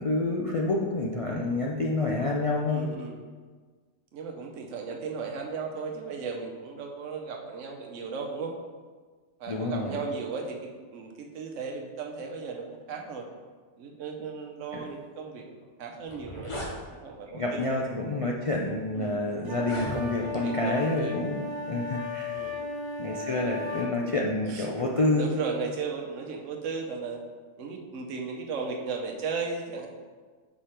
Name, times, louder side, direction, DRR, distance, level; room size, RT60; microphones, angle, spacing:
voice 1, 0.0-2.9 9.5-10.0 14.7-14.8 17.3-22.4 23.0-25.4, left 2 dB, 60° left, -2 dB, 0.3 m, -28 dB
voice 2, 2.7-3.2 4.1-8.5 9.4-13.3 13.8-15.4 15.8-17.8 19.0-19.2 20.2-21.2 22.3-22.6 24.5-24.7 25.1-27.2 27.6-29.9, right 4 dB, 80° right, 1 dB, 1.1 m, -36 dB
sound 1, 15.6-15.7 16.0-16.7 17.6-17.8 18.5-18.6 19.5-20.4, left 1 dB, 30° left, 0.9 m, -37 dB
sound 2, 19.4-23.9, left 3 dB, 25° right, 0.5 m, -35 dB
5.4 x 4.9 x 4.3 m, 1.5 s
omnidirectional pair, 1.3 m